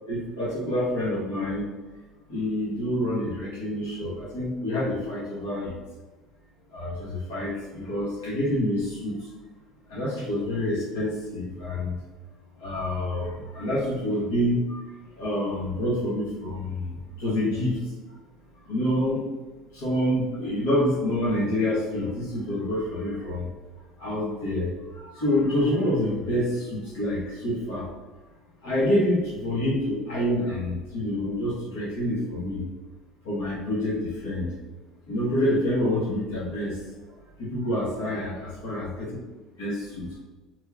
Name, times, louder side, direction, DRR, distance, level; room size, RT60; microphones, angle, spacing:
voice 1, 0.1-1.7 2.3-5.8 6.7-9.3 9.9-12.0 12.6-17.9 18.6-19.2 19.7-23.5 24.0-27.9 28.6-32.6 33.2-34.5 35.1-38.3 38.6-38.8 39.6-40.2, left 1 dB, 85° left, -9 dB, 1.2 m, -27 dB
3.2 x 2.2 x 3.3 m, 1.2 s
hypercardioid pair, 80°, 0 cm